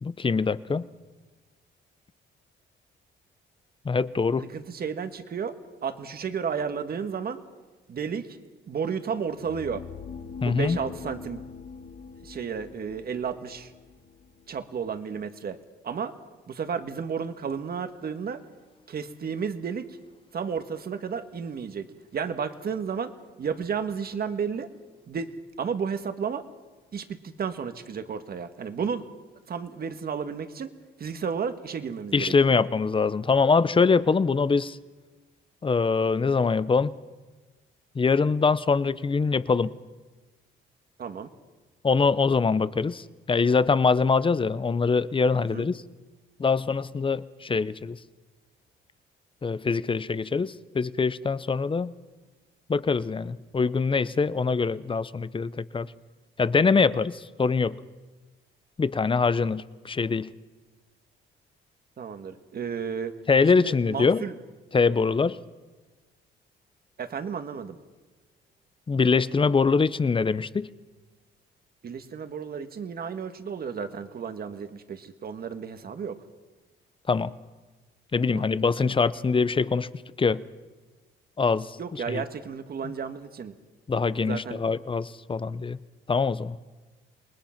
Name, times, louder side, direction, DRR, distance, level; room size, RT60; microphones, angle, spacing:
voice 1, 0.0-0.9 3.8-4.5 10.4-10.8 32.1-34.8 35.6-36.9 37.9-39.7 41.8-45.8 46.4-48.0 49.4-51.9 52.7-55.9 56.4-57.8 58.8-60.3 63.3-64.2 64.7-65.4 68.9-70.7 77.1-77.3 78.1-79.9 80.2-80.4 81.4-81.8 82.1-82.2 83.9-85.8 86.1-86.6, left 4 dB, 25° left, 17 dB, 0.7 m, -23 dB
voice 2, 4.5-5.5 5.8-7.4 7.9-8.4 8.7-9.8 10.4-11.4 12.2-13.7 14.5-15.6 15.8-16.1 16.5-18.4 18.9-20.0 20.3-21.9 22.1-23.1 23.4-24.7 25.1-25.3 25.6-26.4 26.9-29.0 29.5-30.7 31.0-32.6 41.0-41.3 45.5-45.7 62.0-63.1 63.5-64.3 67.0-67.8 71.8-76.2 78.3-78.4 78.8-78.9 81.8-83.5 84.2-84.6, right 6 dB, 50° right, 9 dB, 1.7 m, -32 dB
sound 1, 9.3-15.2, left 6 dB, 70° left, 3.4 m, -44 dB
28.0 x 20.0 x 5.9 m, 1.3 s
cardioid pair, 90°, 20 cm